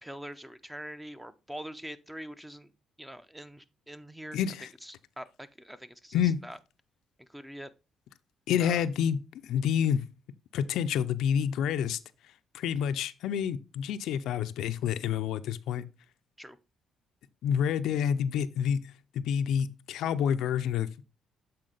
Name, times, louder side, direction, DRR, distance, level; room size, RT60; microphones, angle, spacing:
voice 1, 0.0-2.7 3.0-4.4 4.8-6.6 7.2-7.7 8.6-8.9 16.4-16.6, equal, 5° right, 0.6 m, -44 dB
voice 2, 4.3-4.7 6.1-6.4 8.5-10.0 10.5-12.0 12.5-15.9 17.4-21.0, left 8 dB, 85° left, 0.4 m, -28 dB
7.6 x 4.2 x 3.9 m
cardioid pair, 90°, 0 cm